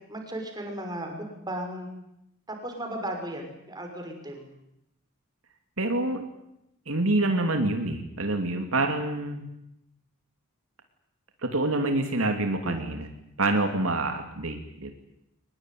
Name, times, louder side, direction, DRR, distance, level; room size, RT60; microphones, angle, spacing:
voice 1, 0.1-1.9 2.5-4.5 12.6-12.9, right 1 dB, 20° right, 3 dB, 6.0 m, -36 dB
voice 2, 5.8-6.2 6.9-9.4 11.4-13.1 13.4-14.9, right 2 dB, 75° right, 5 dB, 2.9 m, -26 dB
23.5 x 21.0 x 9.5 m, 0.82 s
head